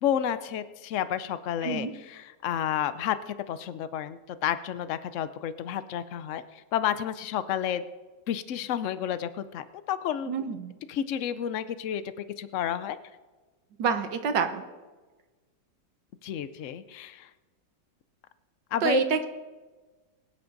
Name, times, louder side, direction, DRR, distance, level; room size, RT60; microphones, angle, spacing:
voice 1, 0.0-6.4 6.7-7.8 8.3-10.3 10.9-13.0 16.2-17.3 18.7-19.0, left 10 dB, 70° left, 13 dB, 0.7 m, -31 dB
voice 2, 10.3-10.7 13.8-14.6 18.8-19.3, right 6 dB, 70° right, 8 dB, 1.6 m, -27 dB
22.5 x 9.6 x 4.0 m, 1.3 s
omnidirectional pair, 2.1 m